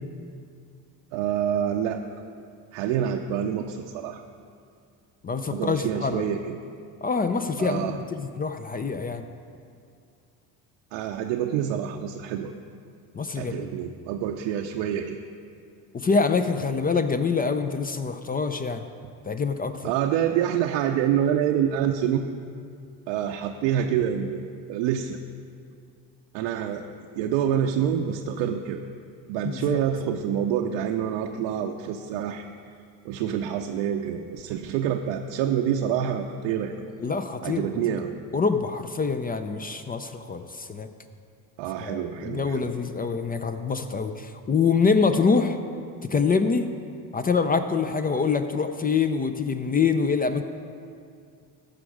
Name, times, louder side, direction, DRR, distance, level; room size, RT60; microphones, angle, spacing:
voice 1, 1.1-2.0 2.7-4.2 5.5-6.6 7.6-8.0 10.9-12.5 13.4-15.2 19.8-22.2 23.1-24.4 24.7-25.2 26.3-26.8 27.2-28.8 29.3-32.4 33.0-36.7 37.4-38.1 41.6-42.7, right 9 dB, 70° right, 3 dB, 0.7 m, -27 dB
voice 2, 5.2-6.2 7.0-9.2 13.1-13.7 15.9-18.8 19.3-19.9 29.4-29.8 37.0-38.0 38.3-40.9 41.8-45.6 46.0-46.7 47.1-50.4, left 5 dB, 20° left, 9 dB, 0.4 m, -25 dB
14.5 x 5.1 x 4.8 m, 2.3 s
hypercardioid pair, 65°, 50 cm